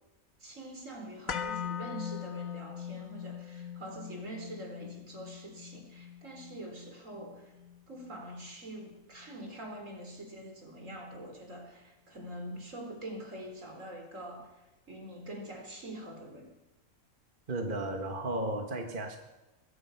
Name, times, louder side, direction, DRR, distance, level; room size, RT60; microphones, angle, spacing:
voice 1, 0.4-7.5 7.9-16.5, right 1 dB, 70° right, 2 dB, 4.5 m, -45 dB
sound 1, 1.3-9.4 9.7-9.8, left 8 dB, 90° left, 1.9 m, -42 dB
voice 2, 17.5-19.2, right 1 dB, 40° right, 4 dB, 1.8 m, -34 dB
23.0 x 21.5 x 5.9 m, 1.0 s
omnidirectional pair, 1.4 m